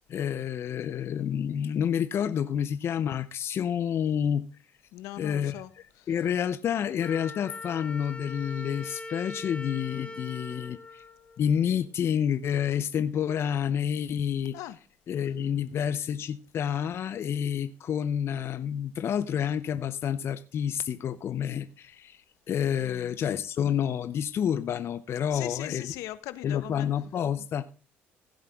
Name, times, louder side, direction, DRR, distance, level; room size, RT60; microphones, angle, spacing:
voice 1, 0.1-4.5 5.2-11.0 11.4-14.6 15.1-25.9 26.4-27.6, left 8 dB, 50° left, 0.7 m, -29 dB
voice 2, 4.9-5.7 6.0-6.1 14.5-14.8 22.8-23.1 25.3-26.9, left 15 dB, 80° left, 1.1 m, -39 dB
Wind instrument woodwind instrument, 7.0-11.8, left 2 dB, 25° left, 1.5 m, -42 dB
16.5 x 7.4 x 3.6 m
supercardioid pair, 80°, 5 cm